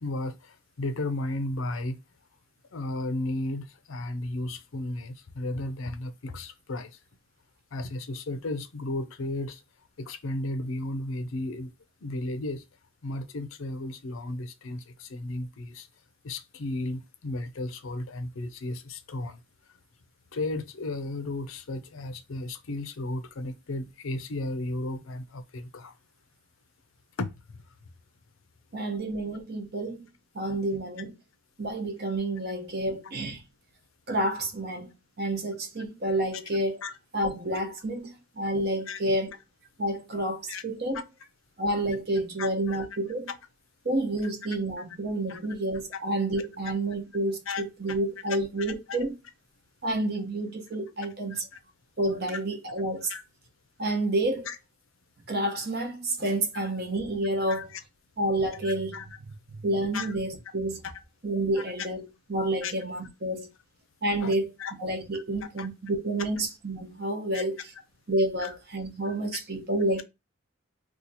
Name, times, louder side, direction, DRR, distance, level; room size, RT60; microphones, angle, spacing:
voice 1, 0.0-2.0 2.7-7.0 7.7-9.6 10.0-11.7 12.0-12.6 13.0-15.9 16.2-19.4 20.3-25.9 27.2-27.6 36.8-36.9 38.9-39.0 40.5-40.6 42.4-42.9 44.2-44.3 44.8-44.9 45.3-45.4 47.5-47.6 48.9-49.0 51.3-51.4 52.3-52.4 53.1-53.2 54.5-54.6 57.5-57.8 58.6-59.1 59.9-60.2 60.8-60.9 61.6-61.7 62.6-62.7 64.2-64.7 65.1-65.2 65.6-65.7 67.3-67.4 68.4-68.5 69.3-69.4, left 2 dB, 75° left, 0.6 m, -34 dB
voice 2, 28.7-31.2 31.6-33.4 34.1-34.9 35.2-36.8 37.1-38.1 38.4-39.3 39.8-41.0 41.6-43.3 43.8-49.1 49.8-51.4 52.0-53.1 53.8-54.5 55.3-57.7 58.2-59.0 59.5-60.8 61.2-63.5 64.0-64.5 64.8-67.6 68.1-70.0, right 1 dB, 50° right, 0.9 m, -29 dB
2.8 x 2.4 x 4.0 m
head